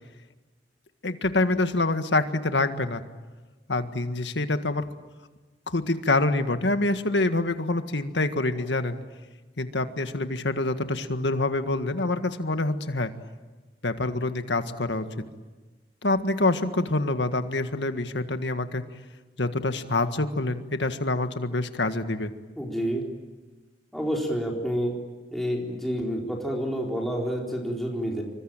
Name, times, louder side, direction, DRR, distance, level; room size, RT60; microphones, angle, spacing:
voice 1, 1.0-3.0 3.7-4.9 5.7-9.0 9.6-13.1 13.8-15.1 16.0-18.8 19.4-22.3, left 2 dB, 75° left, 9 dB, 1.8 m, -26 dB
voice 2, 8.5-8.9 22.6-23.0 23.9-24.9 25.3-28.2, equal, ahead, -1 dB, 4.1 m, -29 dB
27.0 x 24.5 x 9.0 m, 1.3 s
head